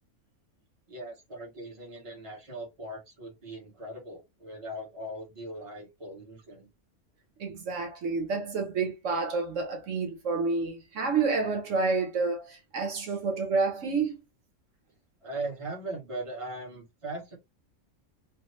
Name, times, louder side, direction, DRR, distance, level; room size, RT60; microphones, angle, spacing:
voice 1, 0.9-6.7 15.2-17.4, right 1 dB, 25° right, 1.1 m, -39 dB
voice 2, 7.4-14.2, right 4 dB, 75° right, 1.2 m, -29 dB
3.3 x 2.0 x 3.0 m
omnidirectional pair, 1.3 m